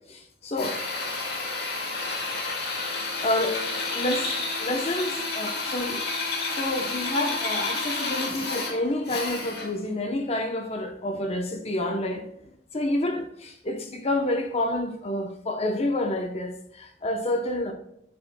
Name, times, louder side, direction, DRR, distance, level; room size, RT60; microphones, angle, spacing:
voice 1, 0.1-0.8 3.2-3.6 3.9-4.3 4.6-6.0 6.5-12.2 12.7-17.7, left 1 dB, 35° left, 0.8 m, -28 dB
Drill, 0.6-9.8, left 3 dB, 65° left, 2.1 m, -30 dB
9.7 x 7.0 x 2.2 m
head